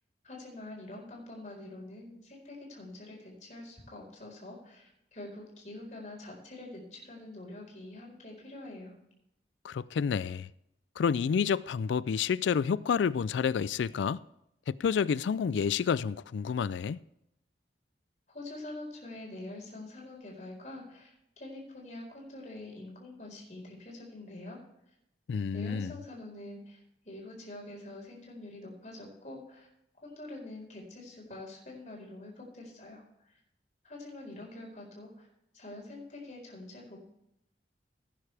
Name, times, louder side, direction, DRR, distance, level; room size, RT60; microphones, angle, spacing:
voice 1, 0.2-8.9 18.3-24.6 25.5-26.8 27.0-29.7 30.0-33.0 33.8-35.3 35.5-37.0, left 2 dB, 40° left, 4.5 m, -45 dB
voice 2, 9.6-10.5 11.0-14.2 14.7-17.0 25.3-26.0, left 6 dB, 85° left, 0.3 m, -29 dB
17.0 x 9.7 x 3.4 m
head